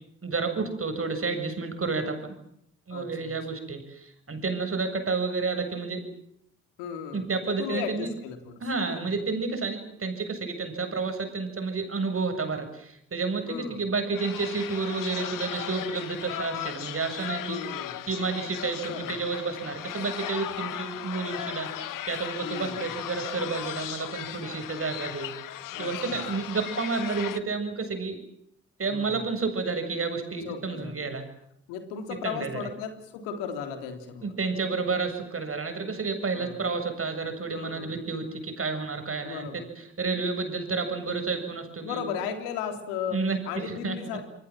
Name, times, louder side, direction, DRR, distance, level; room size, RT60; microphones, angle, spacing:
voice 1, 0.2-2.3 2.9-6.0 7.1-8.1 8.6-17.6 18.1-25.3 25.8-28.2 28.8-31.2 32.2-32.7 34.2-39.6 40.0-42.0 43.1-44.0, right 4 dB, 40° right, 6 dB, 7.5 m, -30 dB
voice 2, 2.9-3.3 6.8-7.3 7.6-9.1 13.5-13.8 17.5-18.1 18.9-19.1 22.4-22.9 25.7-26.4 28.9-29.3 30.4-31.2 31.7-34.3 36.3-36.6 37.5-38.0 39.2-39.7 41.8-44.2, left 7 dB, 85° left, 6 dB, 3.6 m, -36 dB
sound 1, 14.2-27.4, left 12 dB, 65° left, 1.5 m, -37 dB
27.5 x 23.5 x 7.5 m, 0.74 s
hypercardioid pair, 45°, 34 cm